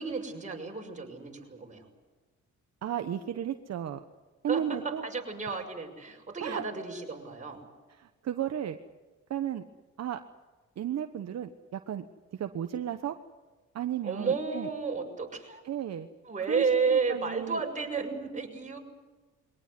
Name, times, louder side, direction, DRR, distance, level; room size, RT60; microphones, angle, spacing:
voice 1, 0.0-1.9 4.5-4.6 5.0-7.6 14.0-15.6 16.3-18.8, right 5 dB, 25° right, 1 dB, 6.2 m, -32 dB
voice 2, 2.8-4.0 4.4-5.1 5.4-5.6 6.4-6.6 7.9-8.8 9.3-9.6 10.0-10.2 10.8-12.0 12.3-13.2 13.7-14.7 15.6-16.1 16.5-17.6, right 9 dB, 60° right, 7 dB, 1.2 m, -34 dB
23.5 x 18.0 x 9.7 m, 1.3 s
cardioid pair, 90°, 30 cm